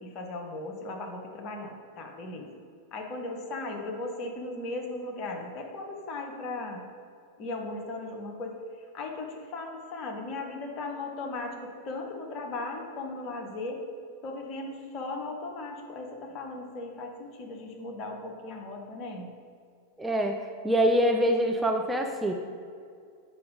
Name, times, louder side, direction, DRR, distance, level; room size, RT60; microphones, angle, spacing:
voice 1, 0.0-2.5 2.9-6.8 7.4-8.5 8.9-13.8 14.2-19.3, left 2 dB, 35° left, 2 dB, 1.2 m, -37 dB
voice 2, 20.0-22.3, equal, 5° right, 3 dB, 0.4 m, -25 dB
8.5 x 5.7 x 3.7 m, 2.3 s
figure-of-eight pair, 90°, 0 cm